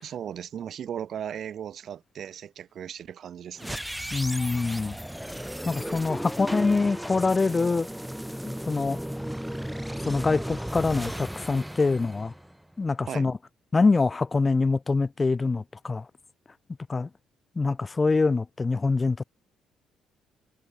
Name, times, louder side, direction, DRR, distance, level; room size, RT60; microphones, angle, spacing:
voice 1, 0.0-3.8 13.1-13.3, right 9 dB, 45° right, 1.1 m, -37 dB
sound 1, 3.6-12.8, equal, ahead, 3.3 m, -35 dB
voice 2, 4.1-4.9 5.6-7.9 8.5-9.0 10.0-12.3 12.8-13.4 13.7-16.0 16.9-17.1 17.5-19.2, left 3 dB, 20° left, 1.3 m, -24 dB
cardioid pair, 150°, 0 cm